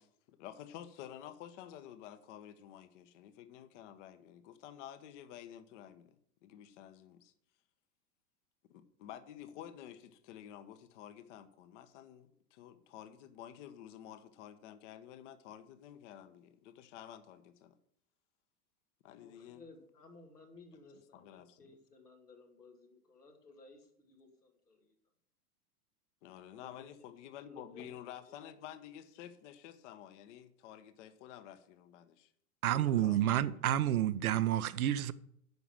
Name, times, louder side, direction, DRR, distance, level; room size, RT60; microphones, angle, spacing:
voice 1, 0.0-6.2 6.4-7.3 8.7-17.7 19.0-19.6 21.1-21.6 26.2-32.3 32.7-33.6, left 10 dB, 50° left, 1.2 m, -51 dB
voice 2, 19.2-25.0 26.5-28.6, left 3 dB, 90° left, 2.6 m, -58 dB
voice 3, 32.6-35.1, right 11 dB, 70° right, 0.8 m, -29 dB
9.3 x 6.0 x 7.4 m
hypercardioid pair, 100°, 45 cm